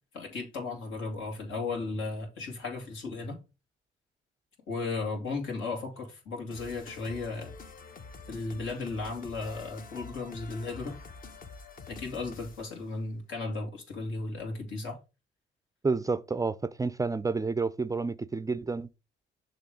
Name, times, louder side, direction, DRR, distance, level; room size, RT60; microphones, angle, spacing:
voice 1, 0.1-3.4 4.7-7.5 8.3-11.0 11.9-15.0, left 3 dB, 85° left, 2.3 m, -35 dB
sound 1, 6.5-12.8, left 4 dB, 45° left, 1.0 m, -47 dB
voice 2, 15.8-18.9, right 4 dB, 15° right, 0.3 m, -30 dB
6.8 x 3.1 x 4.9 m
cardioid pair, 90°, 20 cm